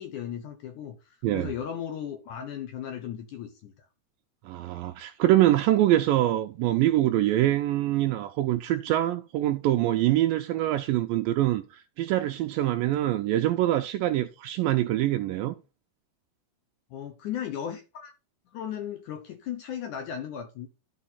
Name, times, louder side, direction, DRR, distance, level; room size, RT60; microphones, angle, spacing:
voice 1, 0.0-3.7 16.9-18.1 18.5-20.7, left 9 dB, 70° left, 2.0 m, -36 dB
voice 2, 4.5-15.6, right 14 dB, 90° right, 2.0 m, -24 dB
12.5 x 4.7 x 4.2 m
omnidirectional pair, 4.6 m